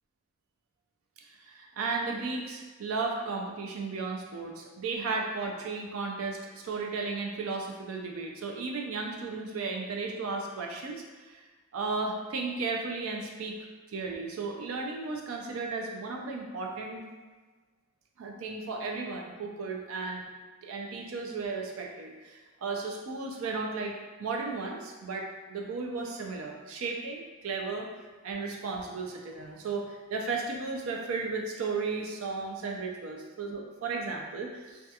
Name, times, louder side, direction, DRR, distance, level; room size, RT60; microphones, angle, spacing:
voice 1, 1.5-11.4 11.7-13.6 13.9-17.0 18.2-20.2 20.6-27.9 28.2-34.8, right 4 dB, 80° right, 1 dB, 0.4 m, -34 dB
2.3 x 2.3 x 2.7 m, 1.4 s
head